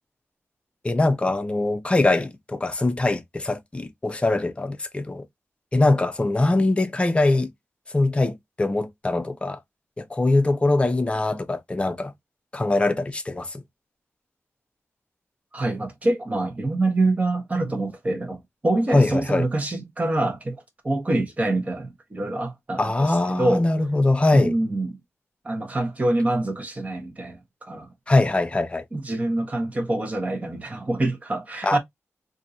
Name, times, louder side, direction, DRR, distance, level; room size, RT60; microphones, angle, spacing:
voice 1, 0.8-5.3 5.7-7.5 7.9-9.6 10.0-12.1 12.5-13.6 18.9-19.5 22.8-24.6 28.1-28.8 31.6-31.8, left 2 dB, 20° left, 0.6 m, -22 dB
voice 2, 15.5-20.5 20.8-23.6 24.3-25.0 25.4-27.9 28.9-31.8, right 2 dB, 30° right, 1.1 m, -25 dB
3.7 x 2.6 x 2.7 m
wide cardioid pair, 135°, 5 cm